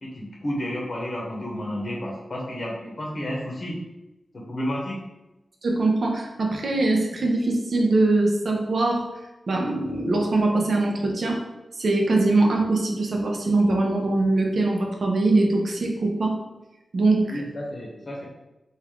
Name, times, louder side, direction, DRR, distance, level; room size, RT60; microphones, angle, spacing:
voice 1, 0.0-3.8 4.3-5.0 17.2-18.2, equal, 50° left, -2 dB, 0.8 m, -31 dB
voice 2, 5.6-9.1 9.5-11.4 11.8-16.4 16.9-17.4, right 2 dB, 65° right, 1 dB, 0.6 m, -22 dB
3.2 x 2.4 x 3.6 m, 1.0 s
wide cardioid pair, 95°, 0 cm